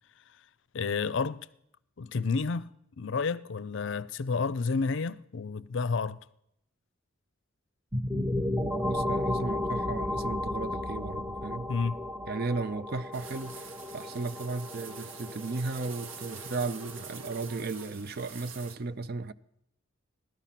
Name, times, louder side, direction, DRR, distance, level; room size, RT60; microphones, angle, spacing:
voice 1, 0.7-1.5 2.0-2.7 3.0-6.2 11.7-12.0, left 4 dB, 60° left, 0.5 m, -30 dB
sound 1, 7.9-17.5, left 1 dB, 10° right, 0.7 m, -34 dB
voice 2, 8.8-11.7 12.3-19.3, right 3 dB, 50° right, 0.5 m, -35 dB
sound 2, 13.1-18.8, right 5 dB, 75° right, 1.4 m, -45 dB
17.0 x 13.0 x 5.8 m
head